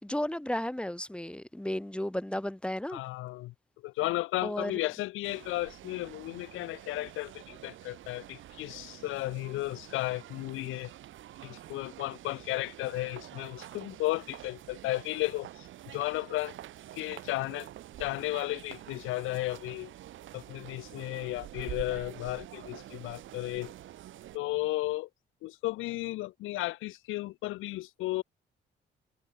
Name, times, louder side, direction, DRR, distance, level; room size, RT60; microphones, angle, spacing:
voice 1, 0.0-3.0 4.4-4.9, left 1 dB, 5° left, 5.5 m, -34 dB
voice 2, 2.9-3.5 3.8-10.9 11.4-16.6 16.9-17.7 18.0-19.9 20.3-23.7 24.3-25.1 25.4-28.2, left 18 dB, 90° left, 0.7 m, -34 dB
sound 1, 5.2-24.4, right 13 dB, 80° right, 6.2 m, -47 dB
cardioid pair, 90°, 20 cm